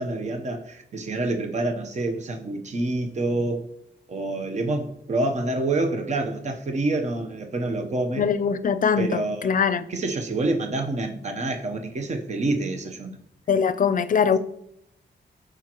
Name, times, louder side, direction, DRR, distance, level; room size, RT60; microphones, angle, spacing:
voice 1, 0.0-3.7 4.1-8.3 9.0-9.5 9.9-13.2, right 2 dB, 40° right, 0.9 m, -27 dB
voice 2, 8.2-9.9 13.5-14.4, left 6 dB, 45° left, 0.5 m, -22 dB
14.5 x 5.1 x 3.0 m
wide cardioid pair, 175°, 18 cm